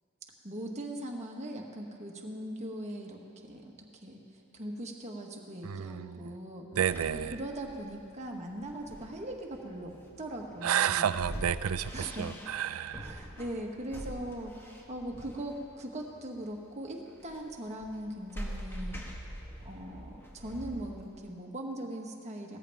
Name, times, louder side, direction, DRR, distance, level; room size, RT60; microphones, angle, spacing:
voice 1, 0.4-3.2 3.5-3.7 4.0-6.6 7.3-11.2 11.9-12.3 13.0-19.0 19.6-22.6, right 1 dB, 30° right, 1 dB, 1.3 m, -40 dB
voice 2, 5.6-6.3 6.8-7.3 10.6-13.1, right 9 dB, 75° right, 15 dB, 0.4 m, -31 dB
sound 1, 6.9-21.3, equal, 10° left, 1.3 m, -44 dB
17.5 x 14.0 x 3.5 m, 2.5 s
head